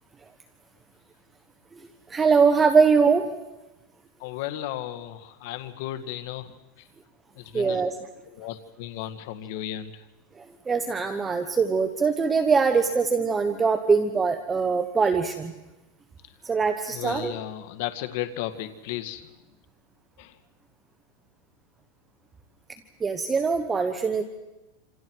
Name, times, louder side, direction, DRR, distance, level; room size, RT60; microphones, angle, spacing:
voice 1, 2.1-3.3 7.5-7.9 10.4-15.5 16.4-17.3 23.0-24.2, right 5 dB, 15° right, 8 dB, 1.2 m, -22 dB
voice 2, 4.2-6.5 7.4-7.8 8.3-9.9 16.9-19.3 20.2-20.3, left 12 dB, 60° left, 9 dB, 1.8 m, -34 dB
28.0 x 27.0 x 4.8 m, 1.0 s
supercardioid pair, 140°, 0 cm